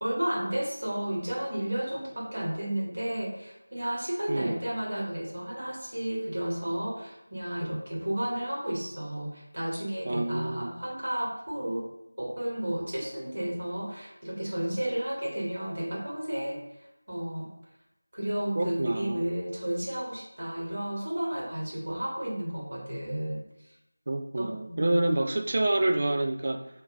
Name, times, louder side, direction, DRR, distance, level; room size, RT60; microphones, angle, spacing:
voice 1, 0.0-11.9 12.2-16.6 17.1-17.5 18.1-23.4 24.3-25.0, right 1 dB, 55° right, -4 dB, 1.6 m, -32 dB
voice 2, 4.3-4.6 10.1-10.7 18.6-19.2 24.1-26.7, right 2 dB, 35° right, 5 dB, 0.4 m, -28 dB
3.6 x 2.8 x 4.7 m, 0.86 s
figure-of-eight pair, 170°, 0 cm